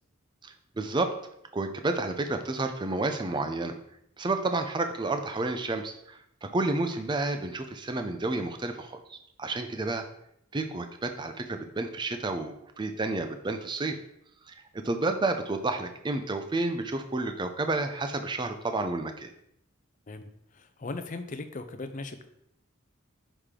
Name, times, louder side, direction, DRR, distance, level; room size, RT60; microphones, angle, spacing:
voice 1, 0.4-1.1 1.5-3.7 4.2-10.1 10.5-14.0 14.5-19.3, right 2 dB, 20° right, 7 dB, 0.5 m, -30 dB
voice 2, 20.5-22.3, left 3 dB, 35° left, 9 dB, 0.5 m, -38 dB
6.3 x 5.0 x 3.7 m, 0.76 s
head